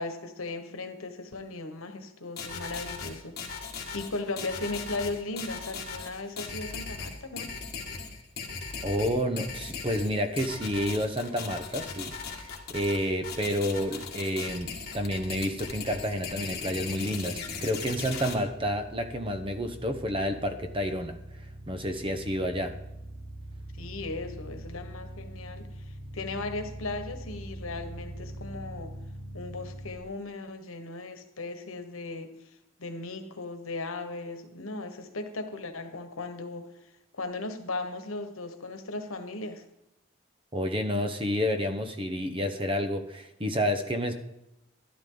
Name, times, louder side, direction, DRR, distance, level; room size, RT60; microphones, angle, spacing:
voice 1, 0.0-7.5 23.8-28.9 29.3-39.6, left 3 dB, 85° left, 7 dB, 1.3 m, -37 dB
sound 1, 2.4-18.3, left 5 dB, 50° left, 2.0 m, -38 dB
voice 2, 8.8-21.2 21.7-22.7 40.5-44.1, equal, 25° right, 7 dB, 1.0 m, -30 dB
sound 2, 15.0-29.9, right 1 dB, 55° right, 2.4 m, -44 dB
12.5 x 12.0 x 3.9 m, 0.90 s
head